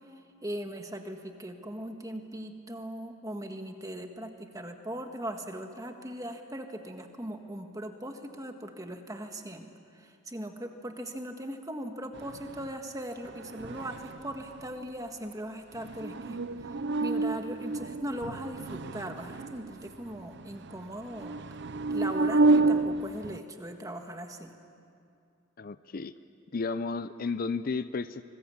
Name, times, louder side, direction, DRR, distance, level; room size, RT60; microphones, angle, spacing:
voice 1, 0.4-9.6 9.9-21.6 21.9-24.5, right 1 dB, 15° right, 5 dB, 1.6 m, -39 dB
sound 1, 12.1-12.7 13.2-14.6 15.7-23.4, right 3 dB, 55° right, 0.5 m, -30 dB
voice 2, 25.6-26.1 26.5-28.2, left 4 dB, 45° left, 13 dB, 0.5 m, -33 dB
25.5 x 20.5 x 8.6 m, 2.4 s
head